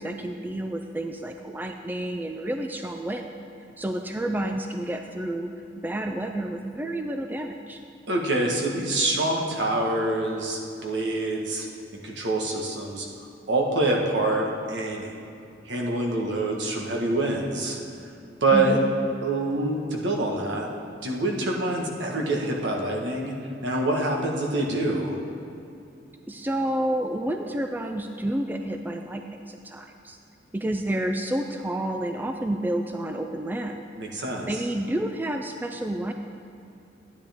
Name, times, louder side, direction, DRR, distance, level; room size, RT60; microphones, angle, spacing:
voice 1, 0.0-3.3 3.8-7.8 18.5-18.8 26.3-30.2 30.5-33.9 34.5-36.1, right 1 dB, 10° right, 4 dB, 0.3 m, -30 dB
voice 2, 8.1-11.6 11.9-13.1 13.5-15.1 15.6-17.8 18.4-18.8 19.2-20.7 21.0-23.3 23.6-25.2 34.0-34.5, right 2 dB, 70° right, 0 dB, 1.4 m, -26 dB
12.5 x 9.8 x 3.5 m, 2.6 s
head